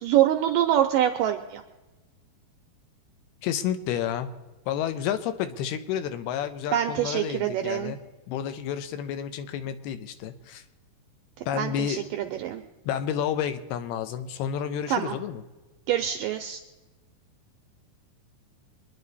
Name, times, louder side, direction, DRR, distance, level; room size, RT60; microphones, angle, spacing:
voice 1, 0.0-1.6 6.7-7.9 11.6-12.6 14.9-15.2 15.9-16.6, right 11 dB, 85° right, 5 dB, 1.9 m, -25 dB
voice 2, 3.4-4.3 4.7-8.0 8.3-10.6 11.5-12.0 12.8-15.4, left 9 dB, 80° left, 10 dB, 2.8 m, -30 dB
25.0 x 10.5 x 4.1 m, 1.1 s
omnidirectional pair, 4.7 m